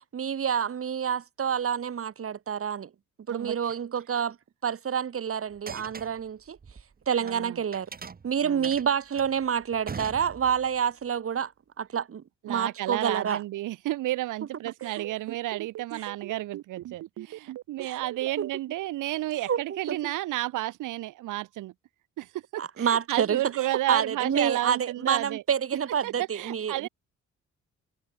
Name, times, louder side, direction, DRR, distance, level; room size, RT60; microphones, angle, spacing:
voice 1, 0.1-2.9 3.3-4.4 4.6-6.6 7.1-7.9 8.2-11.5 11.8-13.4 14.8-15.0 16.0-16.1 17.8-18.0 18.4-18.5 19.5-20.1 22.6-23.4 23.9-26.9, right 8 dB, 50° right, 2.5 m, -28 dB
sound 1, 5.5-7.4 7.7-10.8, right 5 dB, 30° right, 1.3 m, -42 dB
voice 2, 7.2-7.6 8.4-8.7 12.4-21.7 22.2-25.4 26.0-26.9, right 16 dB, 90° right, 2.9 m, -32 dB
sound 2, 14.7-18.5, right 14 dB, 70° right, 0.8 m, -39 dB
cardioid pair, 90°, 30 cm